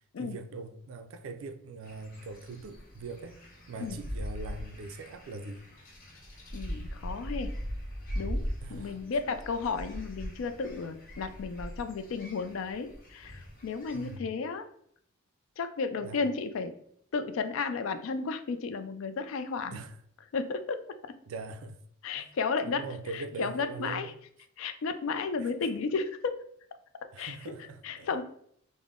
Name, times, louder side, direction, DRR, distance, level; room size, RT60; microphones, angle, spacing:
voice 1, 0.2-3.4 3.7-5.7 8.6-9.0 13.9-14.3 16.0-16.2 19.7-20.0 21.3-21.8 22.2-22.3 22.6-24.1 25.4-25.5 27.1-28.2, right 3 dB, 65° right, 0.4 m, -41 dB
sound 1, 1.8-14.2, equal, 40° left, 0.7 m, -40 dB
voice 2, 6.5-7.5 8.2-8.4 8.7-14.7 15.6-16.7 17.1-19.8 20.3-20.8 21.0-21.1 22.0-22.8 23.1-24.1 24.6-26.4 27.0-27.5 27.8-28.2, left 4 dB, 65° left, 0.3 m, -33 dB
3.7 x 2.0 x 3.6 m
head